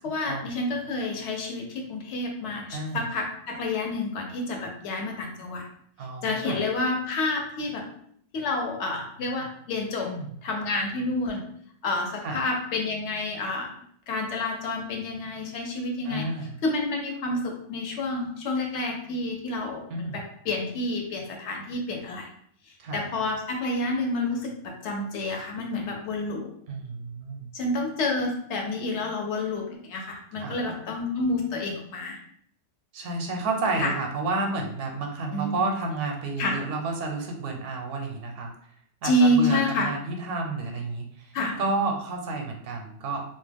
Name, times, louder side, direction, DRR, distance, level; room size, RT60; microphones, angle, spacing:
voice 1, 0.0-5.6 6.2-7.9 8.3-10.1 10.4-11.4 11.8-16.3 16.6-22.3 22.9-26.5 27.5-32.2 33.8-33.9 35.3-35.6 36.4-36.6 39.0-39.9 41.3-41.6, left 2 dB, 70° left, 1 dB, 0.9 m, -29 dB
voice 2, 6.0-6.6 10.0-10.3 12.2-12.4 16.0-16.5 19.9-20.2 22.8-23.1 26.7-27.5 30.4-30.6 32.9-38.5 39.0-41.3 41.6-43.2, right 3 dB, 75° right, 3 dB, 0.9 m, -30 dB
2.3 x 2.1 x 3.3 m, 0.65 s
omnidirectional pair, 1.3 m